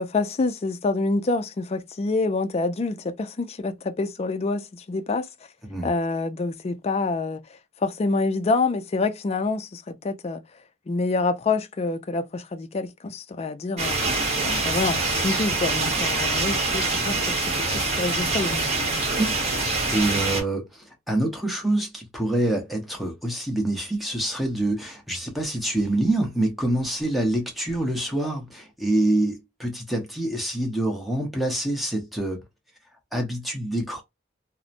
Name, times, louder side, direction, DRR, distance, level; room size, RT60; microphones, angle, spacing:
voice 1, 0.0-5.3 5.8-7.4 7.8-10.4 10.9-14.0 14.4-18.7, left 3 dB, 30° left, 0.3 m, -27 dB
sound 1, 13.8-20.4, right 3 dB, 35° right, 1.0 m, -25 dB
voice 2, 19.2-19.5 19.9-32.4 33.1-34.0, right 1 dB, ahead, 0.8 m, -26 dB
2.9 x 2.1 x 2.4 m
head